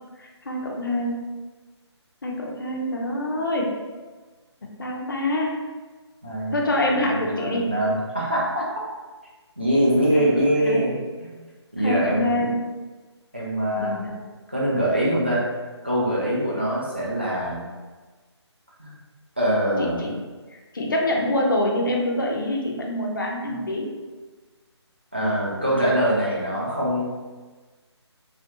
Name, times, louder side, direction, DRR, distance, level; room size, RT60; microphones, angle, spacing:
voice 1, 0.2-1.2 2.2-3.7 4.8-5.5 6.5-7.7 10.1-10.3 10.6-10.9 11.8-12.5 13.8-14.1 19.8-20.2 20.7-23.9, left 1 dB, 45° left, -1 dB, 0.4 m, -25 dB
voice 2, 6.2-6.5 6.9-8.6 9.6-11.3 11.7-12.3 13.3-13.9 14.5-15.5 15.8-17.6 18.8-18.9 19.4-20.0 23.5-23.6 25.1-27.0, right 1 dB, 25° right, -7 dB, 0.4 m, -23 dB
2.4 x 2.2 x 2.7 m, 1.3 s
hypercardioid pair, 180°, 15 cm